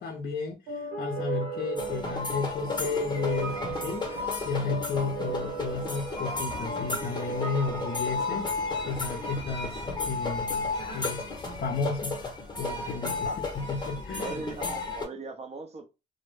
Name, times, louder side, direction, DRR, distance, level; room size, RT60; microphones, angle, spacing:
voice 1, 0.0-8.5 8.9-10.7 10.9-11.2 11.6-14.5, left 4 dB, 50° left, 0.5 m, -33 dB
sound 1, 0.7-9.9, right 2 dB, 85° right, 0.9 m, -37 dB
sound 2, 1.8-15.1, left 3 dB, 20° left, 0.8 m, -33 dB
voice 2, 14.1-15.9, right 3 dB, 35° right, 0.6 m, -39 dB
2.1 x 2.0 x 3.1 m
cardioid pair, 90°, 20 cm